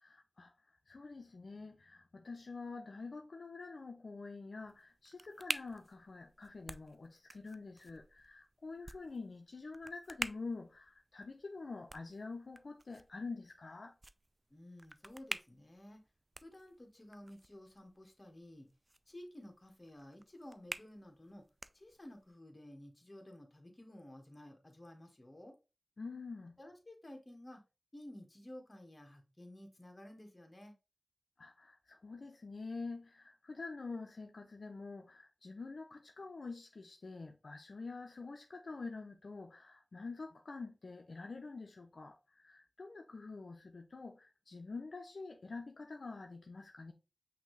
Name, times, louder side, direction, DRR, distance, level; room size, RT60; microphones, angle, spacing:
voice 1, 0.0-13.9 26.0-26.6 31.4-46.9, left 3 dB, 85° left, 0.4 m, -47 dB
sound 1, 4.6-22.3, right 2 dB, 40° right, 0.3 m, -49 dB
voice 2, 14.5-16.0 16.4-18.7 19.1-21.5 21.7-25.6 26.6-27.6 27.9-30.7, left 1 dB, 35° left, 1.3 m, -53 dB
5.7 x 2.7 x 3.1 m
wide cardioid pair, 45°, 0 cm